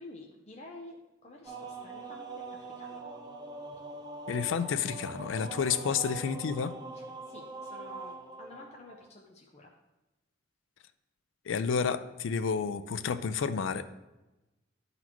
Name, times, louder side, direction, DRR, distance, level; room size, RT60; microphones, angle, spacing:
voice 1, 0.0-3.0 5.9-6.0 6.9-9.7, left 2 dB, 35° left, -1 dB, 0.6 m, -50 dB
sound 1, 1.4-9.1, right 3 dB, 25° right, 0.5 m, -43 dB
voice 2, 4.3-6.7 11.5-13.9, left 6 dB, 90° left, 12 dB, 0.4 m, -30 dB
12.0 x 4.1 x 3.0 m, 1.0 s
head